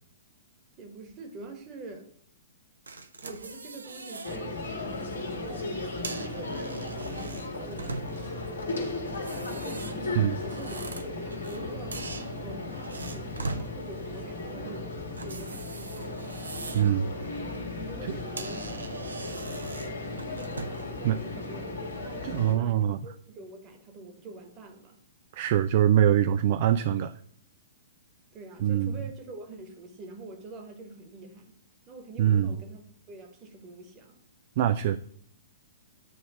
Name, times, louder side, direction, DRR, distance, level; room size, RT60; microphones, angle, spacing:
voice 1, 0.8-2.1 3.2-8.9 9.5-16.4 17.8-18.7 20.0-25.0 28.3-31.6 31.9-32.8 33.1-34.2, right 3 dB, 25° right, 5 dB, 1.4 m, -45 dB
sound 1, 2.9-4.4 4.8-5.1 5.8-8.4 9.1-11.6 11.9-13.7 15.1-16.9 17.3-17.6 18.0-18.1 18.4-20.9, right 4 dB, 75° right, 0.7 m, -40 dB
sound 2, 4.2-22.5, left 2 dB, 75° left, 1.7 m, -36 dB
voice 2, 16.7-17.1 18.1-18.2 21.0-21.2 22.2-23.0 25.3-27.1 28.6-29.0 32.2-32.6 34.6-35.0, right 10 dB, 45° right, 13 dB, 0.3 m, -23 dB
8.7 x 3.2 x 6.1 m, 0.64 s
figure-of-eight pair, 115°, 0 cm